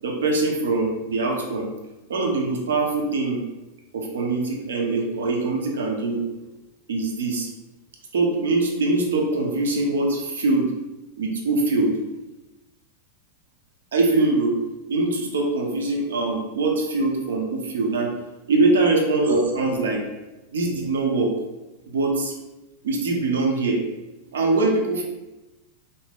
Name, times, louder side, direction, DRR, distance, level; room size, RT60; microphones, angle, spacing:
voice 1, 0.0-1.7 2.1-3.4 3.9-6.2 6.9-7.5 8.1-10.7 11.2-11.9 13.9-14.6 14.9-18.1 18.5-20.0 20.5-21.3 21.9-22.3 22.8-23.8 24.3-25.0, right 3 dB, 65° right, 0 dB, 0.6 m, -23 dB
2.6 x 2.1 x 3.4 m, 1.0 s
figure-of-eight pair, 90°, 0 cm